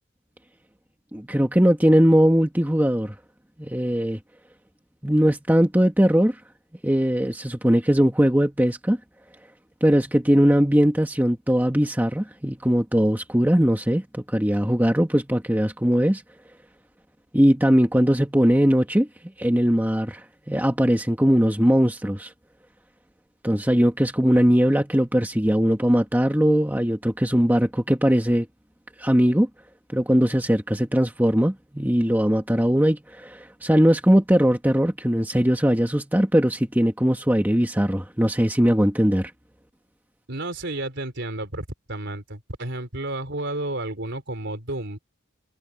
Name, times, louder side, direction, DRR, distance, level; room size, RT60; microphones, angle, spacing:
voice 1, 1.1-3.1 3.6-4.2 5.0-6.4 6.8-9.0 9.8-16.2 17.3-19.1 19.4-22.3 23.4-28.5 29.0-29.5 29.9-39.3, equal, 10° right, 1.5 m, -20 dB
voice 2, 40.3-45.0, right 2 dB, 55° right, 4.5 m, -31 dB
head